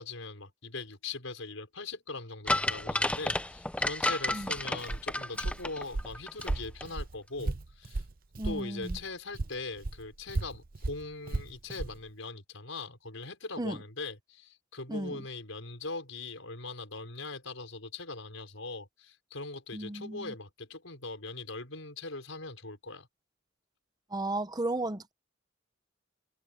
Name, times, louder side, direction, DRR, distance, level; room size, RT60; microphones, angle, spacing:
voice 1, 0.0-8.0 8.4-23.1, left 3 dB, 85° left, 5.5 m, -41 dB
sound 1, 2.5-6.5 6.8-6.9, left 1 dB, 5° left, 0.6 m, -31 dB
Walk footsteps, 4.3-9.1 9.3-12.0, right 2 dB, 45° right, 0.7 m, -36 dB
voice 2, 8.4-9.0 13.6-13.8 14.9-15.2 19.7-20.3 24.1-25.1, right 2 dB, 20° right, 0.9 m, -34 dB
head